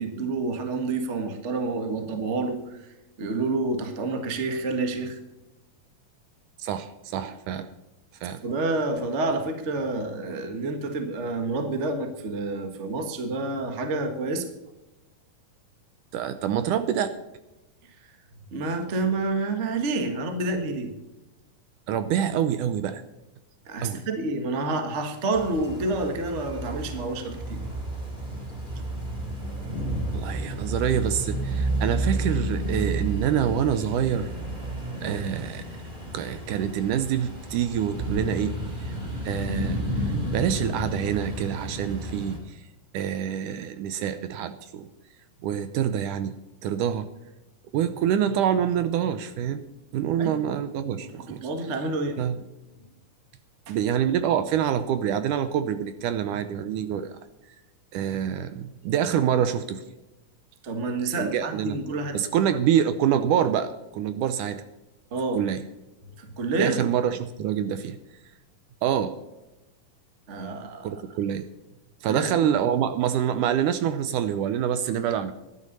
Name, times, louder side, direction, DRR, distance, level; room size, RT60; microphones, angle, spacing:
voice 1, 0.0-2.8 3.2-5.2 8.4-14.5 18.5-20.9 23.7-27.6 35.0-35.2 50.2-50.4 51.0-52.2 53.7-53.8 60.6-62.2 65.1-65.4 66.2-66.8 70.3-71.0 72.0-72.5, right 3 dB, 50° right, 7 dB, 0.8 m, -28 dB
voice 2, 6.6-7.7 8.2-8.4 16.1-17.1 21.9-23.0 23.8-24.0 30.1-34.3 35.0-35.6 36.1-38.5 38.8-38.9 39.2-40.1 40.3-42.4 42.9-44.9 45.4-46.3 46.6-47.1 47.7-49.6 49.9-51.4 52.2-52.4 53.7-57.2 57.9-59.8 61.2-61.8 62.1-64.6 65.3-65.6 66.6-68.0 68.8-69.1 70.8-71.4 72.0-75.3, right 9 dB, 75° right, 11 dB, 2.1 m, -26 dB
sound 1, 25.3-42.4, right 1 dB, 15° right, 2.6 m, -31 dB
12.5 x 10.5 x 5.4 m, 1.0 s
omnidirectional pair, 4.1 m